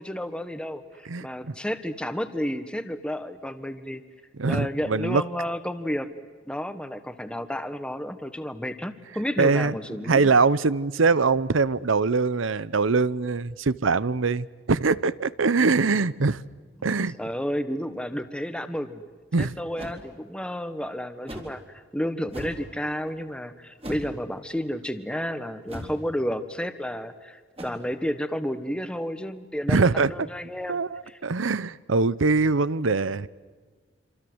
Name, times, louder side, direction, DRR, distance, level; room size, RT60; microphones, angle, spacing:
voice 1, 0.0-4.0 4.4-6.1 6.4-10.3 17.2-19.0 19.4-30.8 31.1-31.2, equal, 5° left, 1.3 m, -31 dB
voice 2, 1.1-1.5 4.4-5.2 9.4-9.8 10.1-16.4 16.8-17.1 19.3-19.5 29.7-30.1 30.7-33.3, right 4 dB, 85° right, 0.8 m, -23 dB
sound 1, 19.8-20.0 21.3-21.6 22.3-22.7 23.8-24.2 25.7-26.0 27.6-27.7, equal, 30° right, 4.2 m, -38 dB
27.0 x 27.0 x 8.0 m
head